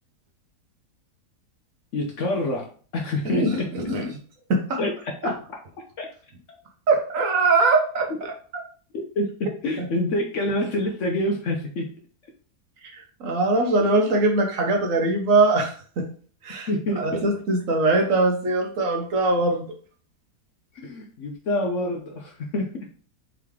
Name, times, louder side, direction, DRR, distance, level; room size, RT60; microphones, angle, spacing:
voice 1, 1.9-2.7 2.9-3.7 4.8-5.3 6.0-6.1 8.1-8.2 9.2-11.9 14.1-14.2 16.7-17.2 20.7-22.9, left 1 dB, 60° left, 2 dB, 0.9 m, -27 dB
voice 2, 3.2-4.1 4.5-4.8 6.9-8.3 9.8-9.9 13.2-16.1 16.4-16.7 17.0-19.7, right 3 dB, 60° right, 2 dB, 1.1 m, -22 dB
3.7 x 3.2 x 3.5 m, 0.42 s
omnidirectional pair, 1.7 m